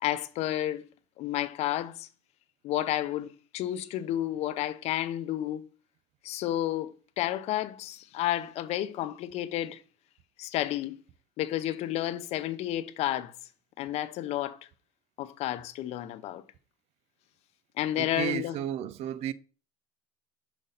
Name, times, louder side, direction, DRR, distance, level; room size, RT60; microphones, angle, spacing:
voice 1, 0.0-0.8 1.2-2.1 2.6-5.6 6.2-9.8 10.4-11.0 11.4-13.3 13.8-14.6 15.2-16.4 17.8-18.6, left 13 dB, 60° left, 0.8 m, -31 dB
voice 2, 18.0-19.3, right 11 dB, 60° right, 0.6 m, -33 dB
7.7 x 5.5 x 4.0 m
supercardioid pair, 95°, 12 cm